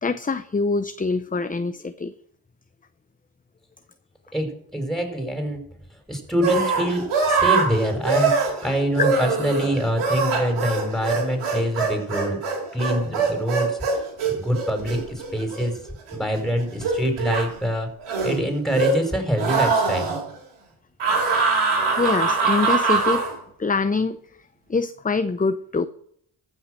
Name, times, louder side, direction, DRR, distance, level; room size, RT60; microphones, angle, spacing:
voice 1, 0.0-2.1 22.0-23.2 23.6-24.2 24.7-25.9, left 4 dB, 15° left, 11 dB, 0.6 m, -24 dB
voice 2, 4.3-5.6 6.1-12.4 12.7-13.8 14.3-15.8 16.1-17.9 18.2-20.1, equal, ahead, 5 dB, 4.7 m, -25 dB
sound 1, 6.4-16.4 16.8-17.5 18.0-19.1 19.4-20.2 21.0-23.3, right 4 dB, 90° right, 3.2 m, -23 dB
14.5 x 6.3 x 6.5 m, 0.67 s
cardioid pair, 50°, 49 cm